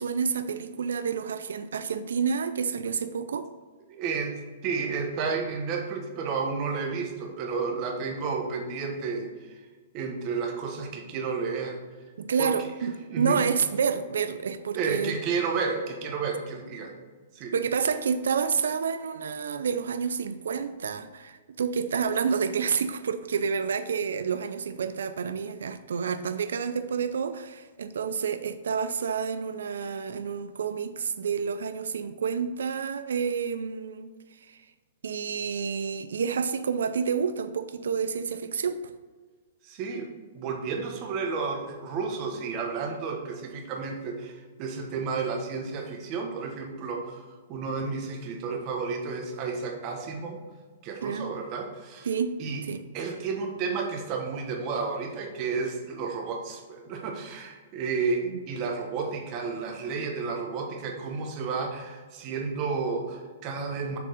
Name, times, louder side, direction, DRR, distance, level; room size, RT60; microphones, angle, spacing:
voice 1, 0.0-3.5 12.2-15.2 17.5-34.1 34.4-34.6 35.0-38.8 51.0-51.3 52.0-52.3 52.6-52.8 58.3-58.4, right 6 dB, 85° right, 10 dB, 0.4 m, -29 dB
voice 2, 3.9-4.3 4.6-9.6 9.9-11.8 12.4-12.5 13.1-13.4 14.7-16.9 17.3-17.5 39.6-47.2 47.5-50.4 50.8-52.1 52.4-52.7 52.9-64.0, right 5 dB, 35° right, 2 dB, 1.3 m, -31 dB
7.0 x 3.7 x 4.8 m, 1.4 s
hypercardioid pair, 145°, 0 cm